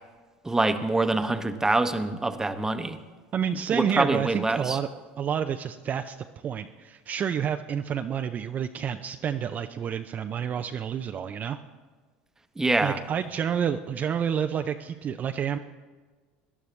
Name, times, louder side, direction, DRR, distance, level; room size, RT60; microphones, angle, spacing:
voice 1, 0.4-3.0 3.7-4.8 12.6-13.0, right 2 dB, 10° right, 9 dB, 1.0 m, -25 dB
voice 2, 3.3-4.9 5.2-6.2 6.4-11.6 12.8-15.6, right 8 dB, 40° right, 7 dB, 0.5 m, -29 dB
18.5 x 11.0 x 3.3 m, 1.4 s
hypercardioid pair, 90°, 5 cm